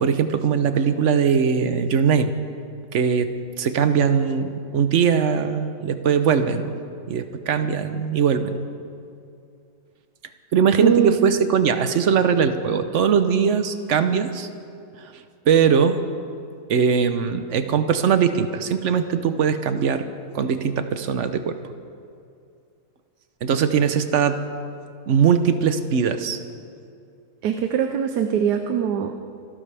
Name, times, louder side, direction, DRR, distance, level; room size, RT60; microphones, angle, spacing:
voice 1, 0.0-2.3 2.9-3.3 3.6-6.8 7.1-8.6 10.5-14.5 15.0-15.1 15.5-16.0 16.7-20.1 20.3-21.6 23.4-24.4 25.1-26.4, right 7 dB, 60° right, 9 dB, 0.9 m, -20 dB
voice 2, 10.8-11.1 27.4-29.1, right 8 dB, 85° right, 6 dB, 1.3 m, -22 dB
27.0 x 12.0 x 3.4 m, 2.4 s
omnidirectional pair, 1.7 m